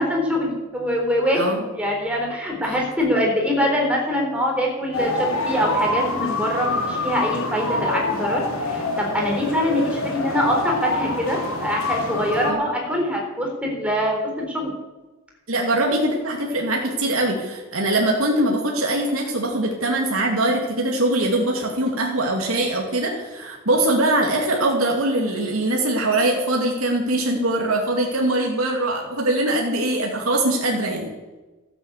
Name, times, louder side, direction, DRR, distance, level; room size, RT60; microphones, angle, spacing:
voice 1, 0.0-14.7, equal, 5° right, -1 dB, 3.9 m, -23 dB
sound 1, 4.9-12.5, left 2 dB, 85° left, 2.9 m, -26 dB
voice 2, 15.5-31.1, right 1 dB, 80° right, 0 dB, 2.4 m, -22 dB
13.5 x 8.8 x 8.2 m, 1.2 s
head